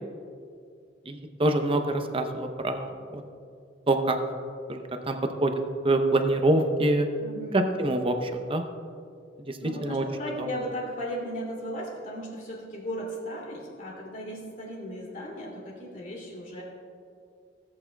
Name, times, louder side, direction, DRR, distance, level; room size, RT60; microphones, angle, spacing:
voice 1, 1.1-3.2 3.9-4.2 4.7-5.5 5.8-7.1 7.8-8.6 9.4-10.0 10.4-10.5, right 2 dB, 30° right, 6 dB, 0.7 m, -26 dB
voice 2, 7.2-7.6 9.6-16.6, equal, 45° left, -3 dB, 2.6 m, -36 dB
18.0 x 8.5 x 2.3 m, 2.3 s
head